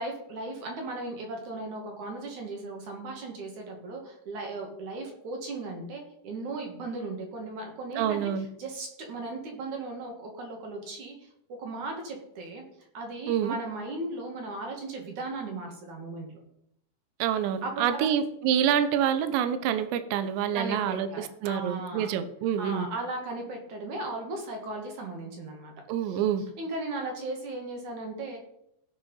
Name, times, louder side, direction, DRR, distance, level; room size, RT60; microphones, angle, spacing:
voice 1, 0.0-8.2 8.6-11.3 11.6-12.6 12.9-16.3 17.6-18.1 20.5-22.1 22.6-25.7 26.1-26.2 26.6-28.4, right 2 dB, 50° right, 2 dB, 2.8 m, -36 dB
voice 2, 8.0-8.5 13.3-13.5 17.2-22.9 25.9-26.4, right 9 dB, 80° right, 11 dB, 3.0 m, -27 dB
16.5 x 6.2 x 5.5 m, 0.76 s
omnidirectional pair, 5.2 m